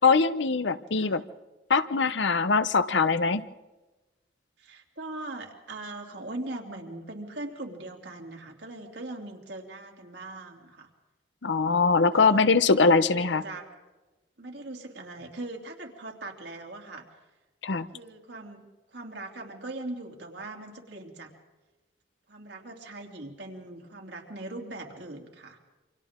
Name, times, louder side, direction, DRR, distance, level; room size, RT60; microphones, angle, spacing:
voice 1, 0.0-1.2 1.7-3.4 11.4-13.4 17.6-17.9, left 4 dB, 90° left, 13 dB, 0.9 m, -22 dB
voice 2, 4.6-10.9 12.1-12.4 13.1-13.7 14.4-17.0 17.9-18.6 18.9-21.3 22.3-25.6, right 2 dB, 75° right, 1 dB, 3.0 m, -40 dB
28.0 x 25.5 x 3.7 m, 1.2 s
head